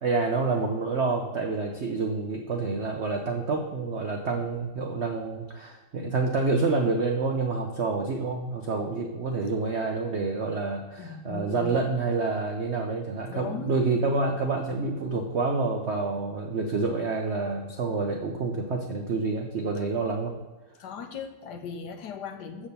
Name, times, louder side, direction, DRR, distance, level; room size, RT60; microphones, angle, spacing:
voice 1, 0.0-20.3, right 3 dB, 70° right, 2 dB, 0.6 m, -28 dB
voice 2, 11.0-11.8 13.3-13.8 20.8-22.7, left 6 dB, 70° left, 7 dB, 1.2 m, -38 dB
7.1 x 4.9 x 6.7 m, 1.2 s
omnidirectional pair, 2.1 m